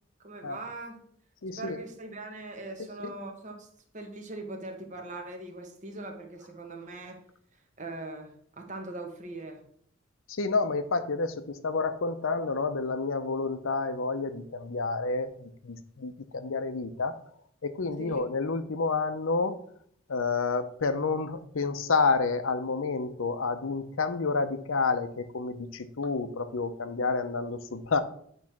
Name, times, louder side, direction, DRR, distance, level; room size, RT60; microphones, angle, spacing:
voice 1, 0.2-1.0 1.6-3.7 3.9-7.2 7.5-9.6 18.0-18.2, right 2 dB, 35° right, 3 dB, 1.1 m, -41 dB
voice 2, 1.4-1.8 10.3-17.2 17.6-19.6 20.1-28.0, left 4 dB, 80° left, 11 dB, 0.7 m, -29 dB
8.6 x 3.2 x 5.9 m, 0.64 s
head